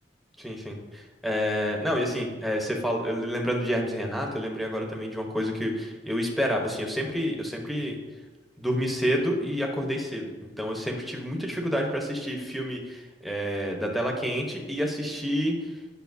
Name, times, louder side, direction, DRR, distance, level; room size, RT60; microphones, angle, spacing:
voice 1, 0.4-8.0 8.6-15.7, equal, ahead, 0 dB, 0.9 m, -29 dB
9.3 x 5.5 x 2.7 m, 1.3 s
head